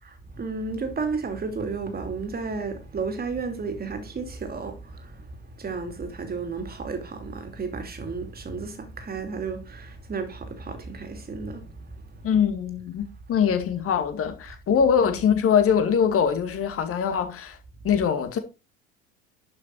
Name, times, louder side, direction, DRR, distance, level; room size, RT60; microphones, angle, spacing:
voice 1, 0.0-12.2 15.1-15.2, right 4 dB, 25° right, 2.9 m, -33 dB
voice 2, 12.2-17.6 17.8-18.4, left 7 dB, 35° left, 2.3 m, -23 dB
11.5 x 5.8 x 4.6 m
figure-of-eight pair, 65°, 37 cm